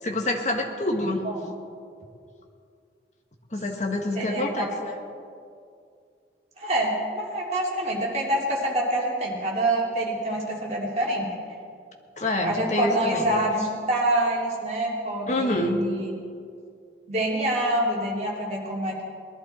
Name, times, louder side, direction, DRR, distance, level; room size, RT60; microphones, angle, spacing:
voice 1, 0.0-1.3 3.5-5.0 12.2-13.3 15.3-15.8, left 1 dB, 40° left, 3 dB, 1.5 m, -27 dB
voice 2, 4.1-4.7 6.6-11.3 12.4-16.1 17.1-19.0, right 1 dB, 40° right, -3 dB, 2.7 m, -26 dB
20.0 x 11.5 x 4.3 m, 2.4 s
head